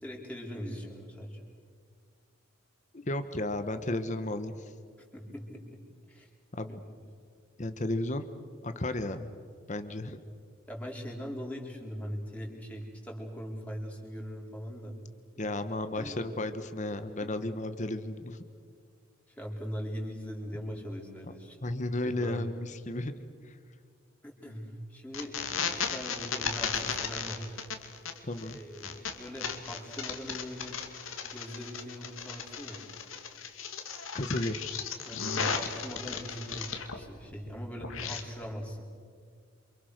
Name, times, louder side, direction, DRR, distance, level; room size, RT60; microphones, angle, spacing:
voice 1, 0.0-1.4 5.1-5.8 6.1-6.3 6.7-6.8 10.7-14.9 15.3-15.5 16.0-16.3 17.2-17.3 19.3-21.6 22.0-22.5 24.2-25.4 25.7-27.6 28.4-30.8 31.2-32.8 35.0-38.9, equal, 5° left, -1 dB, 4.8 m, -41 dB
voice 2, 2.9-4.7 6.5-6.8 7.6-8.3 8.6-9.3 9.7-10.2 15.4-18.4 21.3-21.4 21.6-23.1 23.4-23.6 28.3-28.6 34.1-34.6, left 1 dB, 35° left, 9 dB, 1.3 m, -33 dB
sound 1, 25.1-37.0 37.3-38.2, left 6 dB, 85° left, 2.6 m, -36 dB
28.5 x 26.5 x 6.6 m, 2.1 s
head